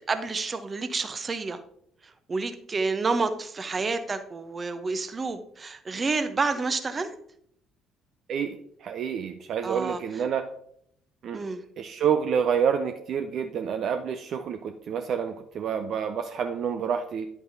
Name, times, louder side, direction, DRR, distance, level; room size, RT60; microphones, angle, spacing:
voice 1, 0.1-1.6 2.0-7.1 9.6-10.2 11.3-11.6, right 4 dB, 30° right, 10 dB, 0.9 m, -29 dB
voice 2, 8.3-10.4 11.2-11.4 11.8-17.3, right 7 dB, 50° right, 8 dB, 0.5 m, -28 dB
10.5 x 8.2 x 2.8 m, 0.69 s
figure-of-eight pair, 50°, 0 cm